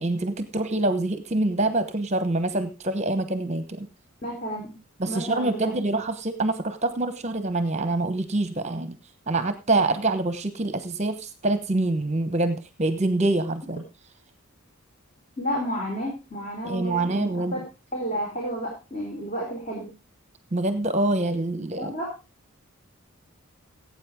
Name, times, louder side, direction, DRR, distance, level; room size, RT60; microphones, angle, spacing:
voice 1, 0.0-3.9 5.0-9.0 9.3-13.8 16.6-17.6 20.5-21.9, right 2 dB, 30° right, 11 dB, 1.0 m, -25 dB
voice 2, 4.2-4.7 5.1-5.7 15.4-17.6 17.9-19.9 21.8-22.1, equal, 30° left, -1 dB, 4.0 m, -31 dB
17.0 x 8.6 x 3.6 m, 0.29 s
head